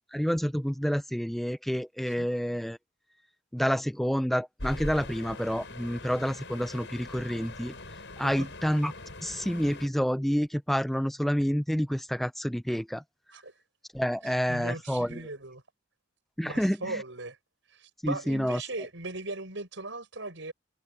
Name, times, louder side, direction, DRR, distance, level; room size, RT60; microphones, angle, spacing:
voice 1, 0.1-2.8 3.5-7.7 8.2-8.9 9.2-13.0 13.9-15.2 16.4-17.0 18.0-18.6, equal, ahead, 0.4 m, -28 dB
sound 1, 4.6-9.9, left 2 dB, 60° left, 7.4 m, -42 dB
voice 2, 14.2-15.6 16.4-17.4 17.7-20.5, right 2 dB, 65° right, 6.6 m, -38 dB
head